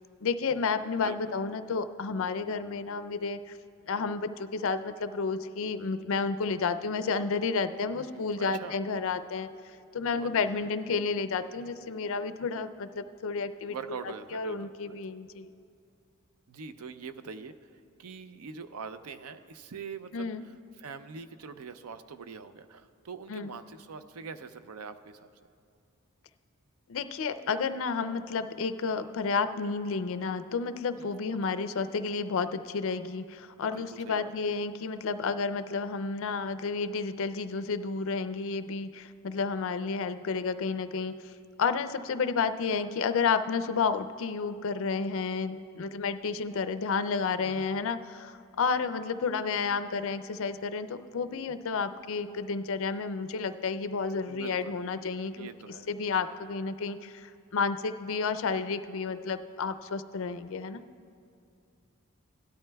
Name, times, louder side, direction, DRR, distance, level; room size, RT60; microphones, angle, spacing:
voice 1, 0.2-3.5 3.9-9.5 9.9-13.7 14.3-15.5 20.1-20.4 23.3-23.5 26.9-41.3 41.6-55.5 55.9-60.8, left 5 dB, 65° left, 12 dB, 0.4 m, -31 dB
voice 2, 1.0-1.3 8.1-8.8 10.1-10.7 13.7-15.0 16.5-25.3 31.0-31.6 33.7-34.3 47.4-47.8 54.3-54.8 55.4-55.9, right 5 dB, 85° right, 11 dB, 0.5 m, -44 dB
17.0 x 12.0 x 2.3 m, 2.4 s
head